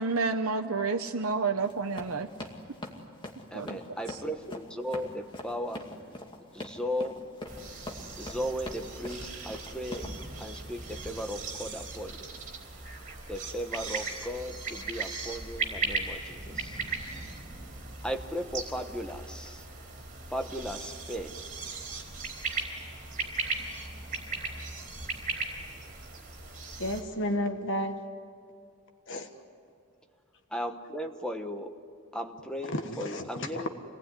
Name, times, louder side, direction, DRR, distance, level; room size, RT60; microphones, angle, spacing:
voice 1, 0.0-2.3 3.5-3.8 4.1-4.2, right 4 dB, 75° right, 4 dB, 0.9 m, -29 dB
Run, 1.6-10.1, left 1 dB, 20° left, 2.4 m, -42 dB
voice 2, 3.5-5.8 6.5-7.2 8.2-10.1 10.4-12.3 13.3-16.8 18.0-19.6 20.3-21.3 30.5-31.7 32.1-33.7, equal, 5° left, 5 dB, 1.1 m, -36 dB
sound 1, 7.5-27.0, right 4 dB, 40° right, 4.5 m, -38 dB
voice 3, 26.8-28.0 29.1-29.3 32.7-33.7, left 1 dB, 60° left, 6 dB, 1.5 m, -32 dB
27.5 x 19.0 x 9.9 m, 2.4 s
head